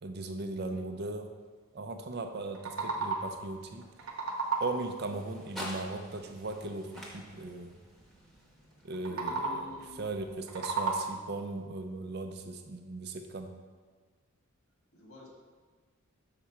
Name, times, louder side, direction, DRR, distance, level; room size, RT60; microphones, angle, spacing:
voice 1, 0.0-1.3 1.7-3.9 4.6-7.8 8.8-9.6 10.0-13.5, right 2 dB, 50° right, 6 dB, 0.5 m, -38 dB
sound 1, 2.4-3.5 3.8-5.0 8.9-9.8 10.3-11.4, right 3 dB, 70° right, 0.9 m, -34 dB
sound 2, 2.7-10.8, equal, ahead, 0.9 m, -49 dB
voice 2, 9.0-9.9 14.9-15.3, left 1 dB, 80° left, -1 dB, 1.7 m, -49 dB
5.9 x 4.2 x 6.0 m, 1.4 s
head